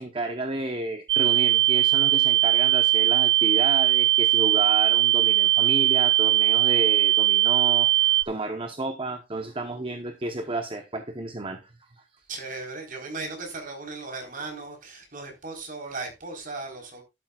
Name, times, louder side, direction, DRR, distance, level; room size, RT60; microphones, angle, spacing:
voice 1, 0.0-12.0, right 2 dB, 30° right, 1.0 m, -32 dB
sound 1, 1.1-8.2, right 14 dB, 85° right, 0.6 m, -20 dB
voice 2, 12.3-17.0, right 3 dB, 50° right, 4.1 m, -37 dB
12.0 x 12.0 x 2.4 m
head